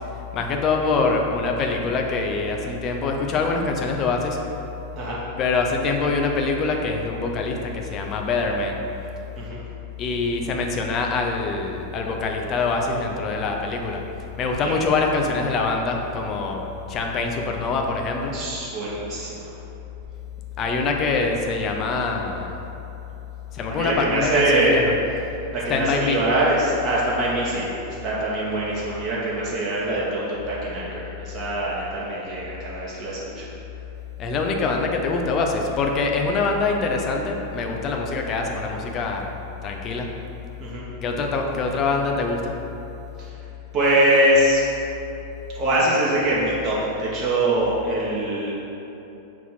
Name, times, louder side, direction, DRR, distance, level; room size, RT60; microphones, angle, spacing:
voice 1, 0.3-4.4 5.4-8.9 10.0-14.1 14.4-18.4 20.6-22.6 23.5-24.9 25.7-26.2 34.2-39.3 39.6-40.2 41.0-42.6, left 4 dB, 30° left, 2 dB, 0.7 m, -24 dB
voice 2, 18.3-19.4 23.7-24.7 25.5-33.5 40.6-40.8 43.2-43.3 43.7-44.6 45.5-48.6, right 1 dB, 30° right, -7 dB, 1.1 m, -23 dB
4.7 x 4.1 x 5.6 m, 3.0 s
figure-of-eight pair, 90°, 0 cm